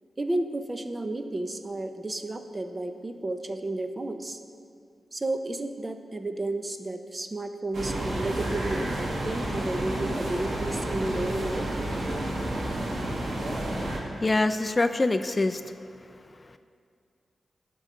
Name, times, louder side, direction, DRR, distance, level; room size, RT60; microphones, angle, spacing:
voice 1, 0.2-4.4 5.1-11.7, right 2 dB, 25° right, 7 dB, 0.6 m, -32 dB
sound 1, 7.7-14.0, right 1 dB, 60° right, 1.7 m, -30 dB
voice 2, 14.2-15.8 16.3-16.6, left 2 dB, 30° left, 9 dB, 0.3 m, -25 dB
10.5 x 3.8 x 7.5 m, 2.3 s
wide cardioid pair, 90°, 0 cm